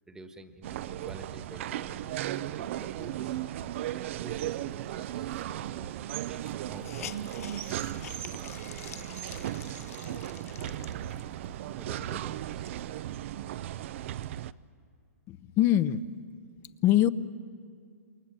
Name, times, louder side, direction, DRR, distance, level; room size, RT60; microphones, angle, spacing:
voice 1, 0.1-2.1 2.6-3.4 3.9-8.2 10.6-10.9 11.7-12.7, right 2 dB, 5° right, 8 dB, 1.4 m, -49 dB
sound 1, 0.6-14.5, right 12 dB, 50° right, 0.6 m, -36 dB
sound 2, 1.8-13.2, right 10 dB, 35° right, 1.0 m, -50 dB
Hiss, 5.6-5.7 5.9-6.0 6.4-11.4 12.0-12.1 12.5-13.8, left 11 dB, 65° left, 0.9 m, -47 dB
voice 2, 15.3-16.0 16.8-17.1, left 13 dB, 30° left, 15 dB, 0.8 m, -23 dB
28.5 x 23.0 x 7.5 m, 2.2 s
hypercardioid pair, 145°, 8 cm